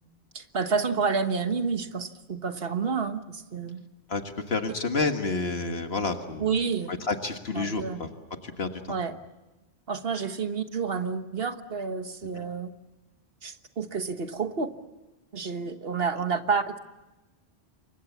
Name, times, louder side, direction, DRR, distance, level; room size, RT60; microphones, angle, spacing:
voice 1, 0.3-3.8 6.4-6.9 7.5-8.0 8.9-9.2 9.9-12.7 13.4-14.7 15.3-16.8, right 5 dB, 65° right, 9 dB, 1.6 m, -29 dB
voice 2, 4.5-6.6 6.9-8.1 8.4-8.8 12.4-12.5, left 3 dB, 70° left, 6 dB, 1.9 m, -29 dB
28.5 x 24.0 x 7.2 m, 1.1 s
omnidirectional pair, 1.1 m